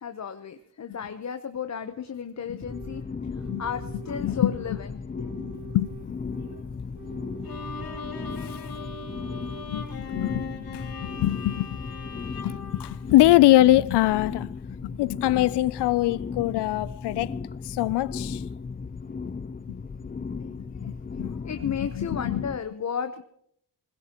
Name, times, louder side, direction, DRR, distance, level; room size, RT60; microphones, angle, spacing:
voice 1, 0.0-3.0 3.6-4.9 5.2-5.3 21.2-23.2, left 7 dB, 45° left, 1.0 m, -33 dB
sound 1, 2.6-22.6, left 5 dB, 25° left, 0.7 m, -36 dB
sound 2, 2.7-3.1 3.3-4.9 5.1-6.7 6.9-8.5 8.7-9.7, right 14 dB, 65° right, 6.0 m, -46 dB
voice 2, 4.2-4.8 5.4-5.9 9.7-11.8 12.4-14.5 14.8-17.4 17.7-18.4 20.9-21.0 21.2-21.3 21.6-22.4, left 15 dB, 80° left, 0.6 m, -23 dB
Bowed string instrument, 7.4-13.7, left 4 dB, 60° left, 2.8 m, -40 dB
20.5 x 20.5 x 3.0 m
supercardioid pair, 55°, 40 cm